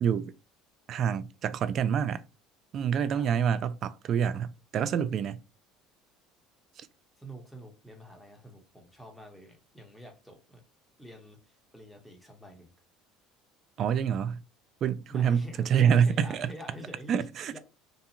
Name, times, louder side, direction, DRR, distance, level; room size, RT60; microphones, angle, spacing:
voice 1, 0.0-0.3 0.9-2.2 2.7-5.4 13.8-14.4 14.8-16.5 17.1-17.6, right 8 dB, 50° right, 0.3 m, -27 dB
voice 2, 7.2-10.6 11.0-12.7 15.1-17.6, right 1 dB, ahead, 0.9 m, -47 dB
2.5 x 2.3 x 2.8 m
supercardioid pair, 95°, 0 cm